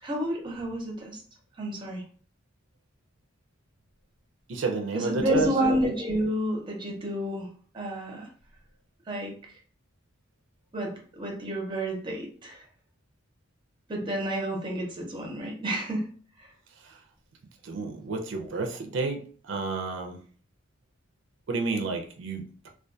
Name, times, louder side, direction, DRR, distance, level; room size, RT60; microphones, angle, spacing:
voice 1, 0.0-1.2 1.6-2.0 4.9-7.5 7.7-8.3 9.1-9.3 10.7-12.6 13.9-16.1 16.4-16.5 18.4-18.5, right 1 dB, 25° right, 0 dB, 0.6 m, -30 dB
voice 2, 4.5-5.5 17.6-19.2 19.5-20.2 21.5-22.7, right 3 dB, 80° right, 4 dB, 0.4 m, -30 dB
2.3 x 2.2 x 2.6 m, 0.42 s
head